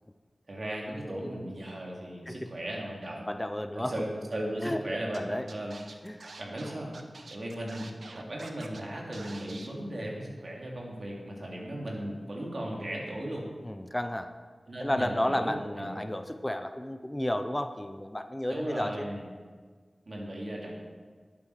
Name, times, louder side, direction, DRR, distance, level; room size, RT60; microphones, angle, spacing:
voice 1, 0.5-3.2 3.7-5.8 6.4-6.9 7.3-7.9 8.1-13.5 14.7-16.0 18.5-19.3 20.1-20.7, right 1 dB, 60° right, -2 dB, 2.7 m, -36 dB
voice 2, 3.3-3.9 4.6-4.8 5.1-5.5 6.0-6.2 13.6-14.3 14.8-19.1, left 1 dB, 15° left, 8 dB, 0.6 m, -32 dB
Scratching (performance technique), 5.1-5.2 5.5-8.8 9.1-9.7, right 3 dB, 80° right, 0.9 m, -47 dB
11.5 x 8.9 x 4.9 m, 1.5 s
wide cardioid pair, 60°, 0 cm